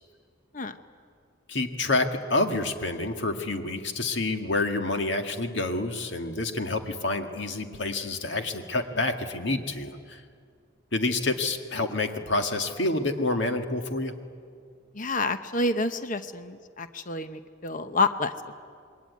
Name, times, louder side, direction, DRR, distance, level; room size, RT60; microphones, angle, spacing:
voice 1, 1.5-10.2 10.9-14.1, left 2 dB, 65° left, 5 dB, 2.0 m, -28 dB
voice 2, 14.9-18.6, left 3 dB, 40° left, 10 dB, 1.0 m, -29 dB
27.0 x 22.0 x 9.5 m, 2.2 s
head